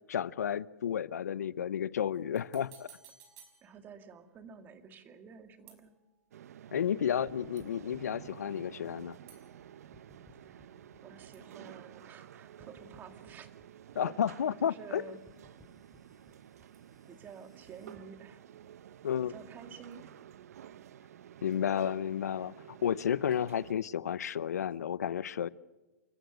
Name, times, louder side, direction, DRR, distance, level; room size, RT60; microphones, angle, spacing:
voice 1, 0.1-2.9 6.7-9.2 13.9-15.0 19.0-19.3 21.4-25.5, left 9 dB, 85° left, 19 dB, 0.7 m, -32 dB
sound 1, 2.1-4.3 5.7-6.4 7.6-8.0 9.3-11.1 11.3-12.5 16.7-17.5 19.9-20.5 21.5-21.6, right 8 dB, 40° right, 5.4 m, -61 dB
voice 2, 3.6-5.9 10.3-13.5 14.6-15.2 17.1-18.5 19.2-20.2, right 6 dB, 20° right, 7 dB, 2.1 m, -51 dB
sound 2, 6.3-23.7, right 10 dB, 75° right, 0.7 m, -52 dB
sound 3, 7.3-9.6 9.9-12.3 12.6-18.0, left 2 dB, 5° left, 4.3 m, -63 dB
28.5 x 14.5 x 8.0 m, 1.2 s
hypercardioid pair, 140°, 9 cm